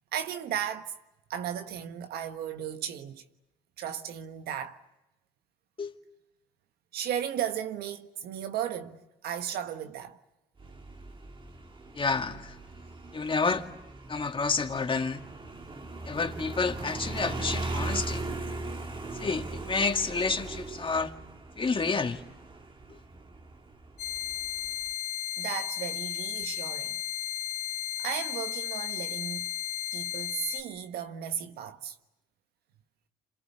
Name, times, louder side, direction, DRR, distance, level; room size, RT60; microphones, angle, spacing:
voice 1, 0.1-1.0 1.3-3.2 3.8-4.8 6.9-10.2 25.4-27.0 28.0-29.5 29.9-31.9, right 9 dB, 70° right, 1.5 m, -35 dB
Motorcycle, 10.6-24.9, right 2 dB, 30° right, 2.2 m, -39 dB
voice 2, 11.9-12.5 13.1-13.6 14.1-15.2 16.1-18.2 19.2-21.1 21.6-22.2, left 4 dB, 30° left, 2.3 m, -29 dB
sound 1, 24.0-30.6, left 11 dB, 70° left, 2.7 m, -34 dB
29.5 x 27.5 x 6.9 m
hypercardioid pair, 55°, 17 cm